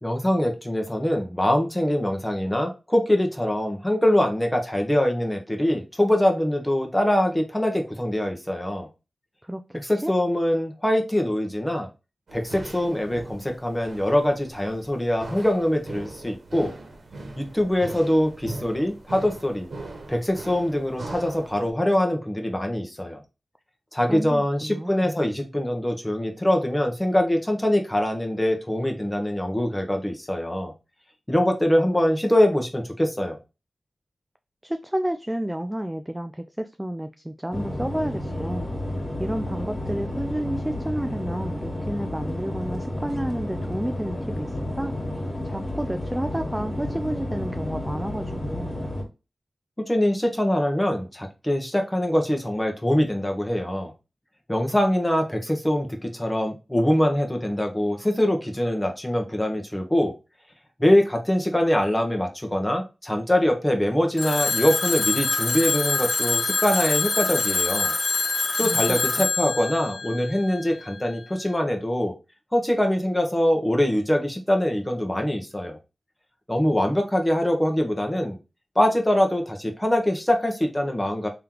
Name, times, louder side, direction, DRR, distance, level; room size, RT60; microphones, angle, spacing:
voice 1, 0.0-8.9 9.7-11.9 12.3-16.7 17.4-19.7 20.1-23.2 23.9-30.7 31.3-33.4 49.9-53.9 54.5-60.1 60.8-67.9 68.6-72.1 72.5-75.8 76.5-78.4 78.7-81.3, left 1 dB, 15° left, 3 dB, 1.2 m, -23 dB
voice 2, 9.4-10.1 24.1-25.2 34.6-38.7 39.2-44.9 45.4-48.8 68.6-68.8 69.2-69.3, right 1 dB, 10° right, 7 dB, 0.4 m, -31 dB
sound 1, 12.3-21.7, right 2 dB, 70° right, 1.2 m, -40 dB
sound 2, 37.5-49.0, left 1 dB, 35° left, 2.0 m, -31 dB
Telephone, 64.2-71.0, left 3 dB, 60° left, 0.9 m, -25 dB
3.3 x 3.0 x 3.8 m, 0.28 s
cardioid pair, 60°, 0 cm